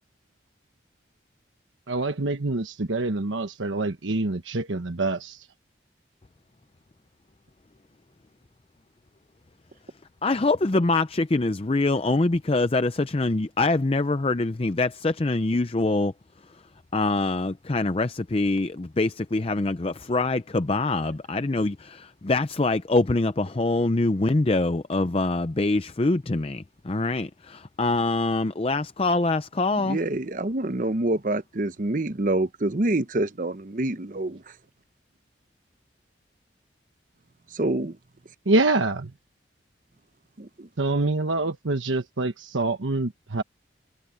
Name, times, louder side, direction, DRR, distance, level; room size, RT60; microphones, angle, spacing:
voice 1, 1.9-5.5 38.5-39.1 40.8-43.4, right 2 dB, 90° right, 1.2 m, -26 dB
voice 2, 10.2-16.1 16.9-30.0, left 2 dB, 30° left, 0.5 m, -24 dB
voice 3, 29.7-34.4 37.5-38.0 40.4-40.7, right 2 dB, 45° right, 0.8 m, -26 dB
head